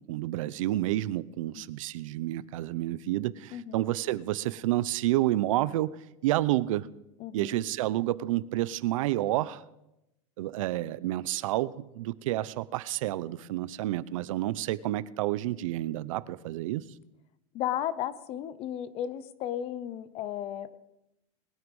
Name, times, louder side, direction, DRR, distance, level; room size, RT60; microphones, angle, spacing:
voice 1, 0.0-5.9 6.2-6.9 7.3-9.6 10.4-16.8, right 15 dB, 75° right, 18 dB, 0.7 m, -29 dB
voice 2, 7.2-7.6 17.5-20.8, left 11 dB, 35° left, 16 dB, 0.8 m, -34 dB
20.5 x 9.4 x 5.4 m, 0.89 s
supercardioid pair, 150°, 17 cm